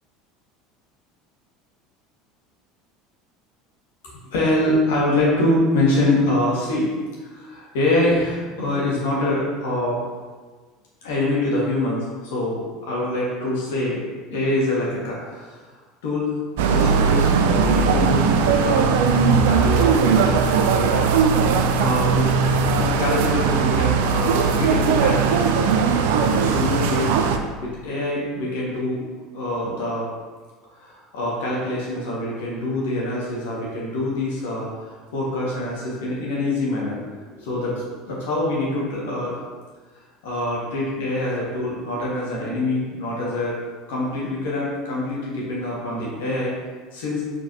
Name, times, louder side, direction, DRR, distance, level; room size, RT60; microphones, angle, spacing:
voice 1, 4.3-6.9 7.3-10.0 11.0-14.0 14.3-15.6 16.0-18.9 19.5-21.4 21.8-22.3 22.8-25.9 26.1-27.1 27.6-29.0 29.3-30.1 30.8-37.0 37.3-39.4 40.2-43.6 43.9-46.5 46.9-47.2, left 1 dB, 60° left, -5 dB, 1.9 m, -25 dB
sound 1, 16.6-27.4, right 5 dB, 60° right, 0.5 m, -19 dB
7.3 x 6.3 x 3.0 m, 1.4 s
figure-of-eight pair, 70°, 0 cm